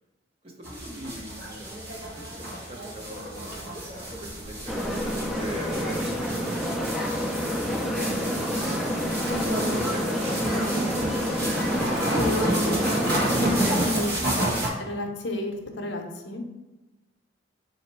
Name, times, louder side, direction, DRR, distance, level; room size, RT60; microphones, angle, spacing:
voice 1, 0.4-6.7 7.1-7.3 9.4-10.4, right 1 dB, 30° right, 0 dB, 0.7 m, -41 dB
sound 1, 0.6-14.7, right 1 dB, 55° right, 1.2 m, -30 dB
sound 2, 4.7-13.9, equal, ahead, 0.4 m, -28 dB
voice 2, 12.1-13.1 13.5-14.1 14.8-16.4, left 2 dB, 65° left, 3 dB, 0.6 m, -31 dB
4.1 x 2.8 x 4.4 m, 1.1 s
head